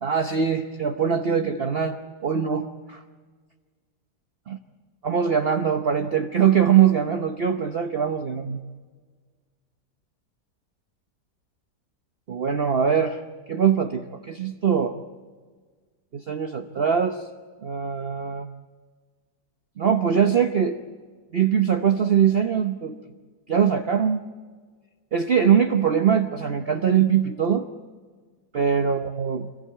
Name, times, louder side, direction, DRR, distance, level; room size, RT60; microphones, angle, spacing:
voice 1, 0.0-3.0 4.5-4.6 5.0-8.6 12.3-13.2 13.5-14.9 16.1-17.2 17.6-18.5 19.8-20.8 21.3-23.0 23.5-24.2 25.1-27.7 28.5-29.5, right 7 dB, 45° right, 7 dB, 1.0 m, -22 dB
27.0 x 15.0 x 8.8 m, 1.5 s
omnidirectional pair, 1.8 m